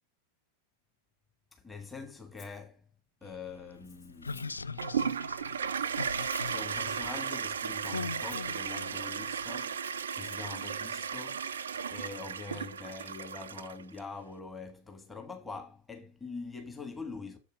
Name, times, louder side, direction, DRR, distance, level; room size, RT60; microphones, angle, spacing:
voice 1, 1.5-2.8 3.2-4.9 6.4-11.5 11.8-17.4, left 4 dB, 10° left, 1.6 m, -44 dB
Rattle (instrument), 2.4-2.6 3.7-4.6 5.7-6.6 7.7-8.5 9.7-10.4, left 7 dB, 35° left, 3.2 m, -59 dB
sound 1, 3.2-9.6, left 4 dB, 80° left, 0.4 m, -42 dB
Toilet flush, 4.8-14.0, right 7 dB, 70° right, 0.5 m, -35 dB
7.3 x 5.3 x 5.1 m
figure-of-eight pair, 90°, 0 cm